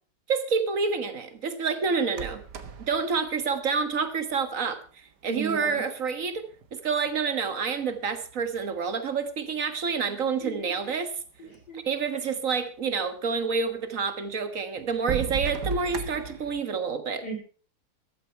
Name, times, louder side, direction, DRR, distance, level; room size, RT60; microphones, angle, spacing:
voice 1, 0.3-2.4 2.8-4.8 5.2-11.1 11.7-17.2, right 5 dB, 55° right, 9 dB, 1.8 m, -28 dB
sound 1, 2.1-4.4 5.4-5.5 6.1-7.3 7.9-8.8 9.6-9.7 9.8-9.9 10.6-10.7 10.9-11.7 13.3-13.4 14.0-14.1 14.8-16.6, right 6 dB, 85° right, 1.8 m, -36 dB
voice 2, 5.3-5.8 10.1-10.2 10.4-10.7 11.4-11.8 17.2-17.4, right 3 dB, 70° left, -1 dB, 4.5 m, -36 dB
14.0 x 12.5 x 4.5 m, 0.39 s
omnidirectional pair, 1.7 m